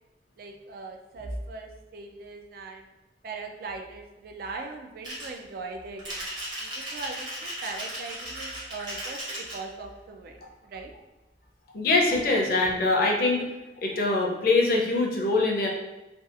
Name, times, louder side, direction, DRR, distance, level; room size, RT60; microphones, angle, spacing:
voice 1, 0.4-2.9 3.2-6.3 6.6-9.2 9.5-10.9, right 3 dB, 55° right, 3 dB, 0.3 m, -39 dB
sound 1, 5.0-5.4 6.0-9.6, right 1 dB, 25° right, 0.8 m, -36 dB
voice 2, 11.7-13.5 13.8-15.7, left 3 dB, 55° left, -1 dB, 0.5 m, -23 dB
2.6 x 2.3 x 2.4 m, 1.1 s
head